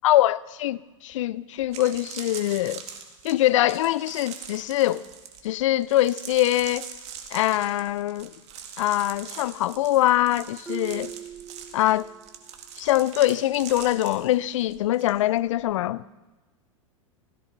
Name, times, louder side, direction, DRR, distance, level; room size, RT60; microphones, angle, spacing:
voice 1, 0.0-2.8 3.2-5.0 5.4-6.9 7.3-8.3 8.8-11.1 11.7-12.1 12.8-16.0, left 14 dB, 65° left, 0.5 m, -23 dB
sound 1, 1.1-1.2 1.6-15.1 15.4-15.7, right 8 dB, 40° right, 2.0 m, -42 dB
Marimba xylophone, 10.7-12.4, right 6 dB, 10° right, 0.5 m, -39 dB
16.5 x 16.0 x 4.0 m
hypercardioid pair, 100°, 17 cm